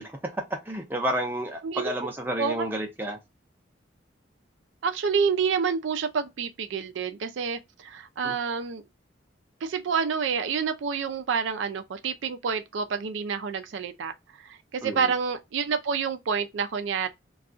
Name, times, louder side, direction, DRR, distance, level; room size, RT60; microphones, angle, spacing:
voice 1, 0.0-3.2 8.2-8.3 14.8-15.1, right 1 dB, 10° right, 0.5 m, -31 dB
voice 2, 1.6-2.1 2.4-2.7 4.8-8.8 9.6-14.1 14.4-17.1, right 6 dB, 75° right, 0.4 m, -28 dB
2.3 x 2.3 x 3.6 m
head